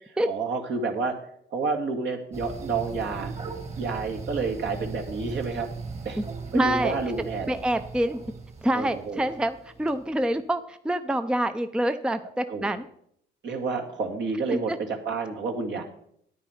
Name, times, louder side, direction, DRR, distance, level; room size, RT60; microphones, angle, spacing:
voice 1, 0.2-1.1 1.5-3.3 3.8-6.2 6.5-7.5 8.7-9.2 12.5-12.7 13.4-15.8, right 4 dB, 65° right, 2 dB, 2.0 m, -30 dB
sound 1, 2.3-9.9, right 4 dB, 30° right, 1.9 m, -38 dB
voice 2, 6.5-7.0 7.5-8.2 8.6-12.8 14.7-14.8, right 1 dB, 5° right, 10 dB, 0.5 m, -26 dB
9.4 x 9.4 x 5.0 m, 0.69 s
cardioid pair, 90°, 20 cm